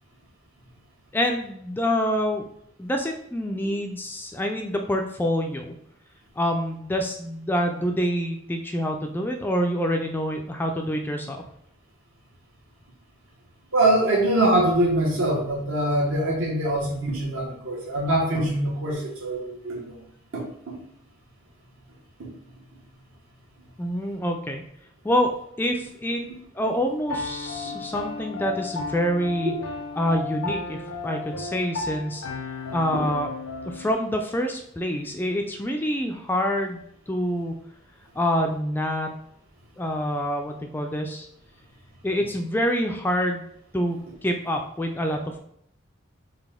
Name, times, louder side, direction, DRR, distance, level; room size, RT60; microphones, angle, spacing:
voice 1, 1.1-2.5 2.8-5.7 6.4-11.4 23.8-24.6 25.0-26.2 26.5-29.5 30.0-32.2 32.7-33.3 33.6-37.5 38.2-39.1 39.8-41.3 42.0-43.5 43.7-45.2, equal, 10° left, 3 dB, 0.3 m, -26 dB
voice 2, 13.7-20.0 20.3-20.4 26.2-26.3, right 1 dB, 80° right, -3 dB, 1.5 m, -23 dB
Piano, 27.1-33.9, left 4 dB, 85° left, 0.6 m, -34 dB
4.0 x 2.5 x 3.6 m, 0.71 s
head